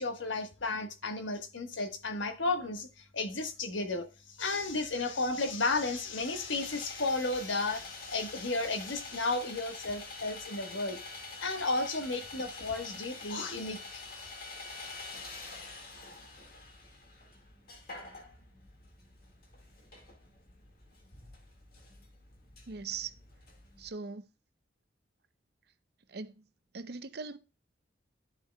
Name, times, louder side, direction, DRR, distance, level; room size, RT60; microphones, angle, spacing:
voice 1, 0.0-2.9 3.1-4.1 4.4-11.0 11.4-14.3, left 3 dB, 80° left, 1.3 m, -33 dB
Sawing, 4.5-23.9, left 3 dB, 50° left, 1.9 m, -47 dB
voice 2, 22.7-23.1 23.8-24.2 26.1-26.4 26.7-27.4, right 5 dB, 55° right, 0.6 m, -40 dB
11.0 x 7.2 x 2.2 m
head